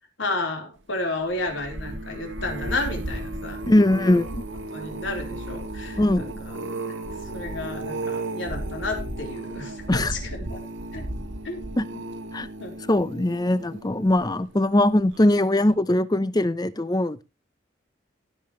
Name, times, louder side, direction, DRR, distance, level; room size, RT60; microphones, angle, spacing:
voice 1, 0.2-3.6 4.7-6.5 7.3-10.6 10.9-11.0 11.4-11.6 12.6-12.7, left 2 dB, 85° left, 2 dB, 4.0 m, -32 dB
sound 1, 1.2-14.6 15.1-15.4 15.7-15.8, right 2 dB, 85° right, 1.6 m, -34 dB
voice 2, 3.7-4.4 6.0-6.3 9.9-10.1 11.8-11.9 12.3-12.5 12.9-17.2, left 1 dB, 20° left, 15 dB, 0.7 m, -21 dB
17.5 x 7.7 x 3.2 m, 0.26 s
head